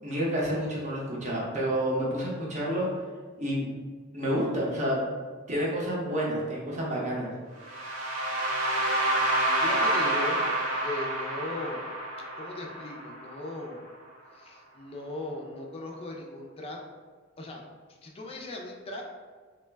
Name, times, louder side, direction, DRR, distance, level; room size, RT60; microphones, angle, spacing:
voice 1, 0.0-2.9 3.4-3.7 4.1-5.0 5.5-7.3, equal, 35° right, -4 dB, 0.7 m, -29 dB
sound 1, 7.6-13.6, right 1 dB, 75° right, 0.7 m, -28 dB
voice 2, 9.6-11.9 12.4-13.8 14.3-16.8 17.4-17.6 18.0-19.0, left 2 dB, 25° left, 0 dB, 0.4 m, -38 dB
3.0 x 2.1 x 3.3 m, 1.5 s
head